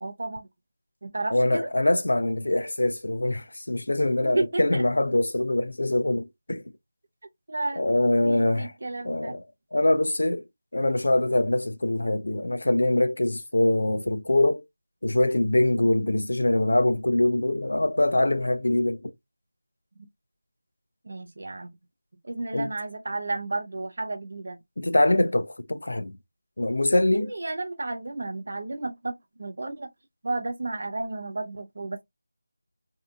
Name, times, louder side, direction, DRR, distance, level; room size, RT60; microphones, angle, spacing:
voice 1, 0.0-0.5 1.0-1.7 4.2-4.8 7.5-7.9 8.2-9.4 15.8-16.1 20.0-20.1 21.0-21.7 22.2-24.6 27.2-29.9 30.2-32.0, right 2 dB, 35° right, 0.5 m, -32 dB
voice 2, 1.3-6.6 7.7-8.7 9.0-9.4 9.7-10.4 10.7-14.6 15.0-19.1 22.5-22.7 24.8-26.2 26.6-27.3, left 1 dB, 60° left, 0.4 m, -23 dB
2.7 x 2.3 x 2.4 m
figure-of-eight pair, 180°, 0 cm